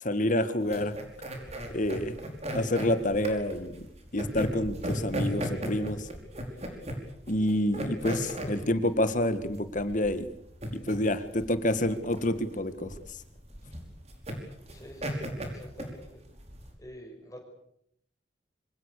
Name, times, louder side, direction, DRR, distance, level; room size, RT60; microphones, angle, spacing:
voice 1, 0.0-0.9 1.7-2.1 2.5-3.9 4.1-6.1 7.3-10.3 10.9-12.9, left 1 dB, 45° left, 11 dB, 1.9 m, -28 dB
sound 1, 0.6-16.7, equal, 35° right, 5.3 m, -36 dB
voice 2, 14.7-16.2 16.8-17.4, equal, 20° left, 2 dB, 6.5 m, -47 dB
25.5 x 25.5 x 6.8 m, 0.73 s
head